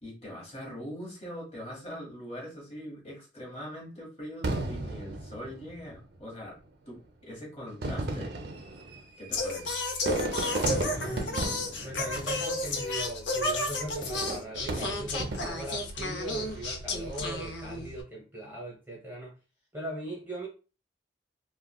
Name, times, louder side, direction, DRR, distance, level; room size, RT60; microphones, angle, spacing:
voice 1, 0.0-6.6 6.9-8.4 9.2-9.8, equal, 35° left, -3 dB, 1.4 m, -42 dB
Fireworks, 4.4-6.1 6.9-7.0 7.7-13.0 14.0-15.8 16.4-16.8, right 2 dB, 60° right, 0.5 m, -34 dB
Singing, 9.3-18.0, left 2 dB, 80° left, 0.6 m, -32 dB
voice 2, 10.9-19.3 19.7-20.5, right 1 dB, 10° right, -4 dB, 0.9 m, -39 dB
3.6 x 2.2 x 2.3 m, 0.33 s
head